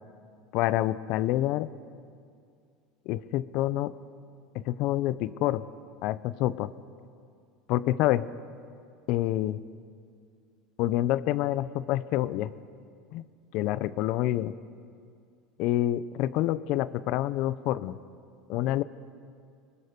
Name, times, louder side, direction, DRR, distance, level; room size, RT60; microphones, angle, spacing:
voice 1, 0.5-1.7 3.1-3.9 4.5-5.6 6.0-6.7 7.7-8.3 9.1-9.6 10.8-12.5 13.1-13.2 13.5-14.5 15.6-18.0 18.5-18.8, left 14 dB, 65° left, 17 dB, 0.7 m, -27 dB
25.5 x 20.0 x 5.3 m, 2.3 s
supercardioid pair, 105°, 0 cm